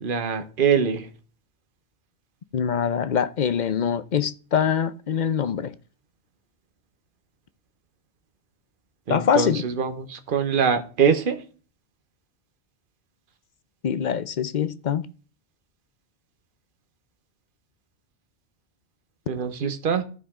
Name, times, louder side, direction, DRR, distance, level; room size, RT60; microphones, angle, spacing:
voice 1, 0.0-1.1 9.1-11.4 19.3-20.0, right 6 dB, 50° right, 1.2 m, -23 dB
voice 2, 2.5-5.7 9.1-9.6 13.8-15.1, left 7 dB, 50° left, 0.6 m, -24 dB
15.0 x 5.1 x 3.7 m
omnidirectional pair, 1.2 m